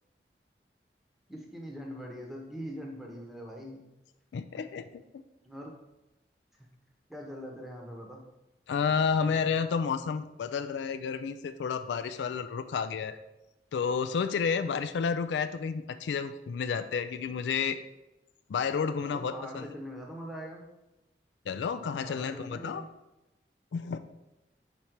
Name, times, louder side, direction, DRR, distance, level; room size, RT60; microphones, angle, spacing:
voice 1, 1.3-3.8 5.4-5.7 7.1-8.2 19.0-20.6 21.7-22.9, equal, ahead, 0 dB, 0.8 m, -42 dB
voice 2, 4.3-4.8 5.1-5.2 8.7-13.2 13.7-17.8 18.5-19.7 21.5-22.8 23.7-24.0, left 6 dB, 85° left, 10 dB, 0.3 m, -31 dB
5.1 x 4.2 x 4.5 m, 0.97 s
head